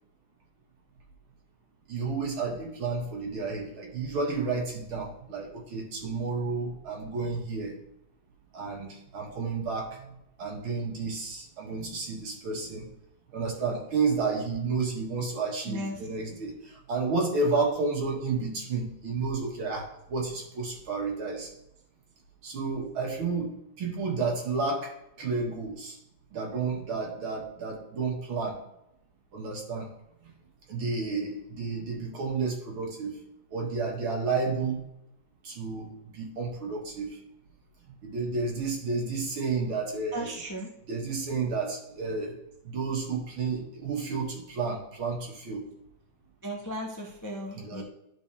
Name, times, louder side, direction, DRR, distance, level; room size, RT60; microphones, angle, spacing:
voice 1, 1.9-7.8 8.5-12.9 13.3-21.5 22.4-23.5 23.8-24.9 25.2-26.0 26.3-28.6 29.3-29.9 30.2-30.3 30.7-33.1 33.5-34.9 35.4-37.2 38.0-40.3 40.9-42.3 42.6-45.6 47.5-47.8, right 4 dB, 80° right, -1 dB, 2.6 m, -31 dB
voice 2, 15.7-16.0 40.1-40.7 46.4-47.8, right 1 dB, 25° left, -1 dB, 0.3 m, -36 dB
11.5 x 4.6 x 3.4 m, 0.82 s
omnidirectional pair, 2.2 m